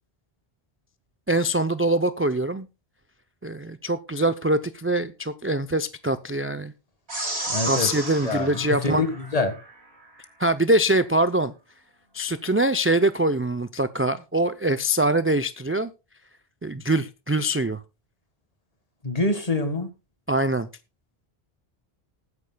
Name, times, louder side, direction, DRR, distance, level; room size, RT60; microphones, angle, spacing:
voice 1, 1.3-2.7 3.4-6.7 7.6-9.0 10.4-11.5 12.1-15.9 16.6-17.8 20.3-20.7, right 1 dB, 20° right, 0.4 m, -23 dB
sound 1, 7.1-9.7, right 2 dB, 90° right, 5.2 m, -32 dB
voice 2, 7.5-7.9 8.2-9.6 19.0-19.9, left 2 dB, 35° left, 1.8 m, -25 dB
19.5 x 9.7 x 2.3 m
omnidirectional pair, 1.1 m